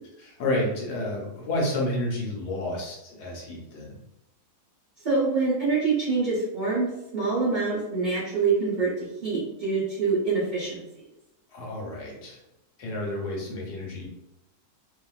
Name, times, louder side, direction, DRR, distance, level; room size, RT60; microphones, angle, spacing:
voice 1, 0.2-4.0 11.5-12.4 12.8-14.1, left 1 dB, 85° left, -3 dB, 1.4 m, -30 dB
voice 2, 5.0-10.8, right 4 dB, 40° right, -8 dB, 0.7 m, -25 dB
2.8 x 2.5 x 2.3 m, 0.90 s
omnidirectional pair, 1.7 m